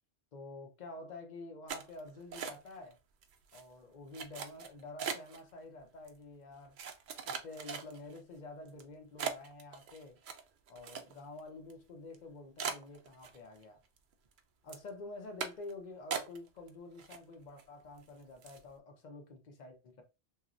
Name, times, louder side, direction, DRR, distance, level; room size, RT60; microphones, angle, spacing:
voice 1, 0.3-3.0 3.5-6.8 7.2-10.2 10.7-13.8 14.6-20.0, left 2 dB, 45° left, 0.7 m, -49 dB
sound 1, 1.7-2.9 3.2-3.6 4.1-5.4 6.1-6.2 6.8-8.2 8.7-8.8 9.2-11.4 11.7-11.8 12.1-12.2 12.6-13.6 14.0-14.4 14.7-14.9 15.4-15.7 16.1-16.7 17.0-17.6 18.0-18.1 18.4-18.7, right 6 dB, 60° right, 0.6 m, -40 dB
3.0 x 2.4 x 2.5 m
omnidirectional pair, 1.1 m